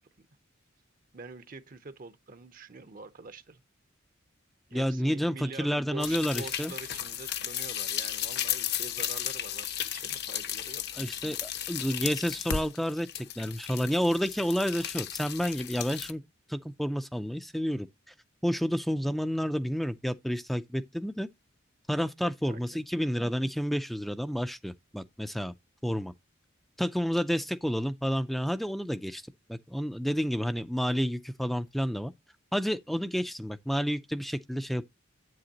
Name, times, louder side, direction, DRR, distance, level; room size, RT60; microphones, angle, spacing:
voice 1, 1.1-3.6 4.7-11.0 22.0-22.8, right 3 dB, 45° right, 0.7 m, -45 dB
voice 2, 4.7-6.7 11.0-16.2 16.5-17.9 18.4-21.3 21.9-25.5 25.8-26.1 26.8-29.2 29.5-32.1 32.5-34.8, equal, ahead, 0.4 m, -30 dB
sound 1, 6.0-16.1, left 10 dB, 55° left, 0.8 m, -35 dB
9.0 x 7.8 x 2.8 m
head